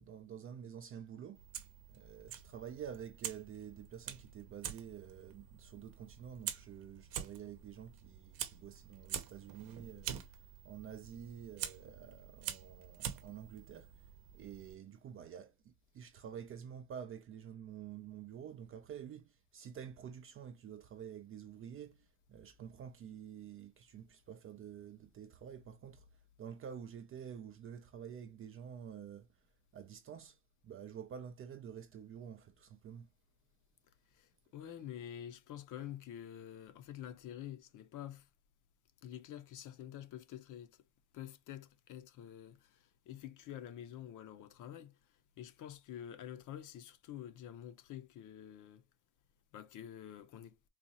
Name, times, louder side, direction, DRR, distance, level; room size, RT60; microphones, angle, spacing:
voice 1, 0.0-1.4 1.9-13.9 14.3-26.1 26.4-29.3 29.7-30.4 30.6-33.1, right 8 dB, 35° right, 0.4 m, -49 dB
Fire, 1.3-14.7, right 9 dB, 55° right, 0.8 m, -46 dB
voice 2, 34.1-38.3 39.0-40.8 41.1-44.9 45.4-48.8 49.5-50.6, left 10 dB, 45° left, 0.6 m, -48 dB
4.0 x 2.3 x 2.8 m
cardioid pair, 130°, 43 cm